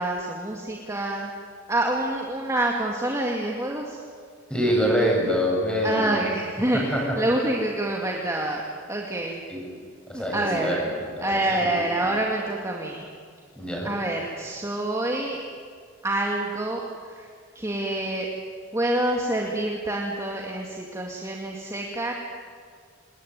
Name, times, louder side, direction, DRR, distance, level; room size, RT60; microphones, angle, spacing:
voice 1, 0.0-1.3 1.7-4.0 5.8-8.6 8.9-9.4 10.1-10.9 11.2-13.0 13.8-15.4 16.0-17.3 17.5-18.3 18.7-22.1, right 1 dB, 15° right, -1 dB, 2.2 m, -27 dB
voice 2, 4.5-6.2 6.7-7.2 9.5-9.7 10.1-11.7 12.0-12.1 13.6-13.9, equal, 5° left, -2 dB, 7.6 m, -25 dB
27.5 x 21.0 x 9.5 m, 2.1 s
head